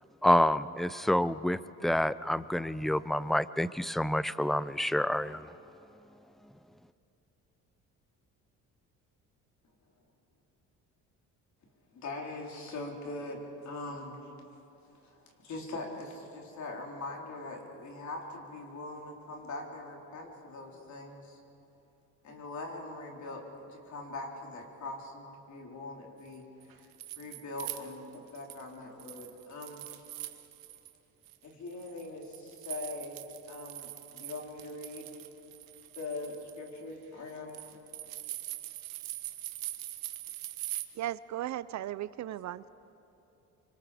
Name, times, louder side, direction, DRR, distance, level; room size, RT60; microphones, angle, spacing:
voice 1, 0.2-5.4, left 1 dB, ahead, 17 dB, 0.5 m, -28 dB
voice 2, 11.9-14.3 15.0-21.4 22.2-23.4 23.7-26.5 27.2-29.8 31.4-35.1 36.0-37.7, left 2 dB, 55° left, 1 dB, 4.0 m, -42 dB
sound 1, 26.6-28.7 29.0-30.9 31.2-40.8, right 16 dB, 90° right, 1.3 m, -42 dB
voice 3, 41.0-42.7, right 12 dB, 60° right, 17 dB, 0.5 m, -36 dB
26.5 x 25.0 x 5.0 m, 2.9 s
cardioid pair, 95°, 33 cm